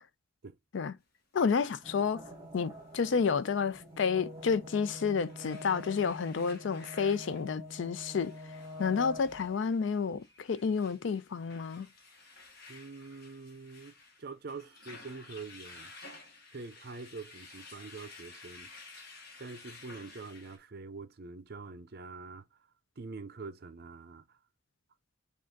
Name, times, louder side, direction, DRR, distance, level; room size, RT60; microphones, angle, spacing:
voice 1, 1.3-2.3 2.5-8.3 8.8-11.9, left 5 dB, 65° left, 0.4 m, -30 dB
sound 1, 1.6-1.7 4.1-4.3 4.9-20.6, left 3 dB, 50° left, 1.2 m, -53 dB
sound 2, 1.8-9.6, left 1 dB, 20° right, 1.2 m, -47 dB
voice 2, 12.7-15.9 16.5-18.7 19.4-22.4 23.0-24.2, right 4 dB, 50° right, 0.5 m, -45 dB
5.1 x 2.4 x 3.7 m
head